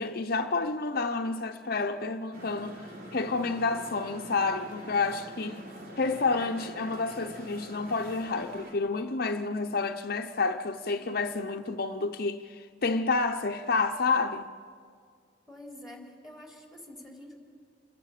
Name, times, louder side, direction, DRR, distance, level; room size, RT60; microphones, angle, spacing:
voice 1, 0.0-5.6 6.0-14.5, left 3 dB, 60° left, 0.7 m, -29 dB
sound 1, 2.3-8.7, right 1 dB, 60° right, 3.5 m, -44 dB
voice 2, 15.5-17.4, left 1 dB, 5° right, 3.7 m, -47 dB
27.5 x 22.0 x 6.7 m
head